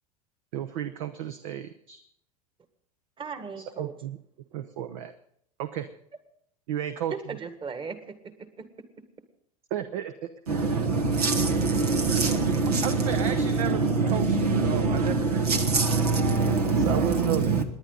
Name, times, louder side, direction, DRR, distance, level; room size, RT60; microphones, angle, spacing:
voice 1, 0.5-2.0 3.6-4.2 4.5-5.1 5.6-5.9 6.7-7.4 9.7-10.3 12.1-12.4 12.8-13.9 14.1-15.6 16.9-17.6, right 10 dB, 60° right, 9 dB, 0.9 m, -33 dB
voice 2, 3.2-3.9 7.1-8.1 8.6-8.7 16.3-16.7, right 5 dB, 25° right, 10 dB, 1.7 m, -37 dB
voice 3, 10.5-17.6, right 4 dB, 80° right, 6 dB, 1.7 m, -24 dB
28.0 x 10.5 x 3.9 m, 0.70 s
figure-of-eight pair, 80°, 19 cm